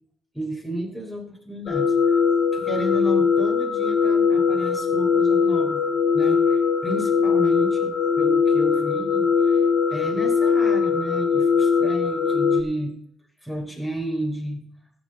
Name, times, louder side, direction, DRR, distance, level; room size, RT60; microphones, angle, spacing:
voice 1, 0.3-2.2 2.5-5.8 6.1-13.0 13.4-14.6, right 1 dB, ahead, 1 dB, 3.6 m, -32 dB
sound 1, 1.7-12.6, left 6 dB, 80° left, 1.5 m, -20 dB
15.0 x 5.3 x 7.7 m, 0.62 s
cardioid pair, 90°, 0 cm